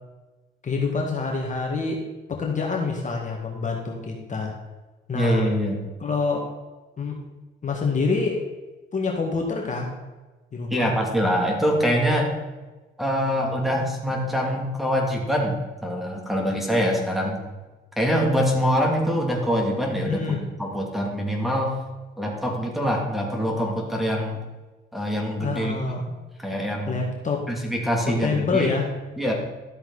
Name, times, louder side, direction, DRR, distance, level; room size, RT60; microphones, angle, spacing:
voice 1, 0.6-2.0 2.3-4.5 5.1-5.5 6.0-6.5 7.0-7.2 7.6-8.4 8.9-9.9 10.5-10.9 20.1-20.4 25.4-26.1 26.9-27.4 28.1-28.9, left 4 dB, 40° left, 0 dB, 2.1 m, -26 dB
voice 2, 5.1-5.8 10.7-12.3 13.0-17.4 18.0-21.7 22.2-24.4 24.9-25.8 26.4-27.0 27.5-28.7 29.2-29.3, equal, ahead, -2 dB, 3.0 m, -24 dB
13.0 x 7.8 x 4.3 m, 1.2 s
cardioid pair, 90°, 20 cm